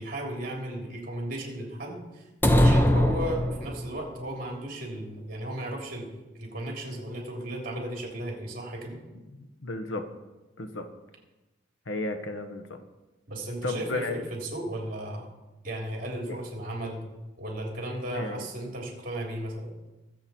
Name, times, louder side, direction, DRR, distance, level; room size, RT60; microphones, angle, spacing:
voice 1, 0.0-6.1 6.4-9.0 13.3-15.3 15.6-17.0 17.4-19.7, right 1 dB, 45° right, 0 dB, 3.4 m, -35 dB
sound 1, 2.4-4.0, equal, 10° left, 0.7 m, -21 dB
voice 2, 9.3-10.1 10.6-10.9 11.9-12.8 13.6-14.2 16.3-16.4 18.1-18.5, left 2 dB, 75° left, 6 dB, 1.1 m, -33 dB
22.5 x 7.8 x 4.4 m, 1.1 s
head